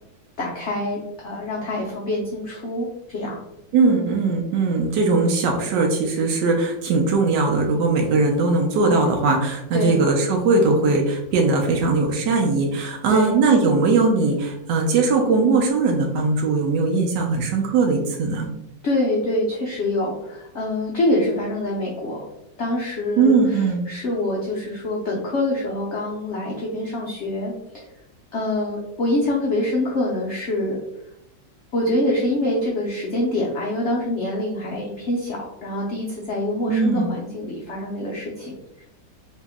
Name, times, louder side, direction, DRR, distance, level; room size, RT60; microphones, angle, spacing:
voice 1, 0.4-3.4 9.7-10.0 13.1-13.4 18.8-22.2 22.6-27.8 28.3-30.8 31.7-38.8, left 1 dB, 85° left, -3 dB, 0.6 m, -25 dB
voice 2, 3.7-18.5 23.2-23.8 36.7-37.1, right 3 dB, 75° right, 1 dB, 1.2 m, -20 dB
3.0 x 2.8 x 3.4 m, 0.85 s
omnidirectional pair, 2.0 m